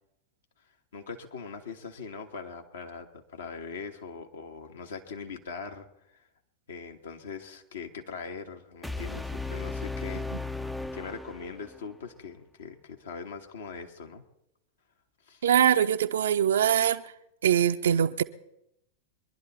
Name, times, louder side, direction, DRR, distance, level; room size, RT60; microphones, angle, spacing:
voice 1, 0.6-6.3 6.7-10.3 10.9-14.2 15.2-15.5, left 5 dB, 65° left, 1.5 m, -41 dB
sound 1, 8.8-11.9, left 3 dB, ahead, 0.5 m, -36 dB
voice 2, 15.4-17.1 17.4-18.2, right 9 dB, 65° right, 0.6 m, -23 dB
22.5 x 11.5 x 4.2 m
figure-of-eight pair, 90°, 0 cm